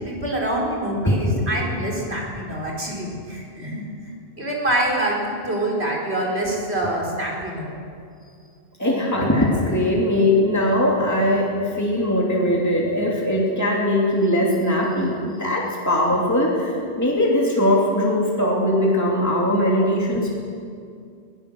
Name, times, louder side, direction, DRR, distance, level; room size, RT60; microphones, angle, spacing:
voice 1, 0.0-3.9 4.4-7.7, right 1 dB, 75° right, -2 dB, 4.7 m, -25 dB
voice 2, 1.0-1.6 8.8-20.4, left 1 dB, 15° left, -3 dB, 3.0 m, -20 dB
21.5 x 18.5 x 6.7 m, 2.3 s
omnidirectional pair, 1.1 m